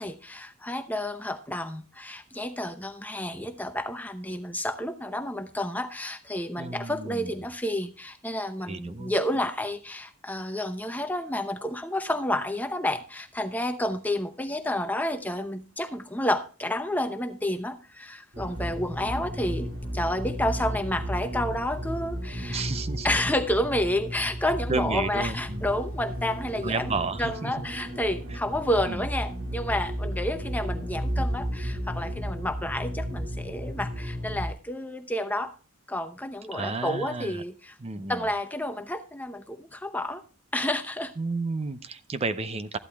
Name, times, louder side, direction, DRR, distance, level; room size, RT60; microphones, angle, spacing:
voice 1, 0.0-19.7 19.9-22.6 23.0-26.9 27.2-35.5 35.9-37.7 38.1-40.2 40.5-41.1, left 1 dB, 10° left, 8 dB, 0.7 m, -30 dB
voice 2, 6.6-7.3 8.7-9.5 22.5-23.2 24.7-25.7 26.6-27.7 28.9-29.0 36.5-37.4 37.8-38.3 41.2-42.8, right 3 dB, 30° right, 12 dB, 0.6 m, -32 dB
sound 1, 18.3-34.5, equal, 60° right, 2.5 m, -33 dB
14.0 x 11.5 x 2.3 m, 0.35 s
head